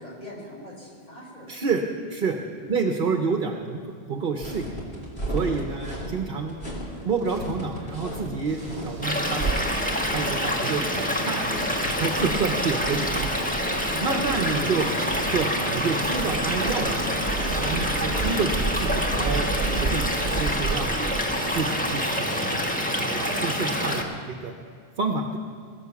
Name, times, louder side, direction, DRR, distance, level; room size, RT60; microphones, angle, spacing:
voice 1, 0.0-1.6 2.6-2.7 5.8-6.0, left 1 dB, 40° left, -4 dB, 4.6 m, -43 dB
voice 2, 1.5-1.8 2.1-2.4 2.7-4.7 5.3-6.6 7.0-9.6 10.1-11.5 11.9-13.5 14.0-14.9 15.3-19.5 19.7-22.6 23.0-24.5 25.0-25.4, right 4 dB, 60° right, 4 dB, 1.1 m, -29 dB
sound 1, 4.4-21.5, equal, 60° left, 3.2 m, -35 dB
sound 2, 8.5-22.7, right 4 dB, 35° right, 0.7 m, -34 dB
Stream / Liquid, 9.0-24.0, equal, 10° left, 1.4 m, -27 dB
21.5 x 9.5 x 7.1 m, 2.2 s
omnidirectional pair, 1.1 m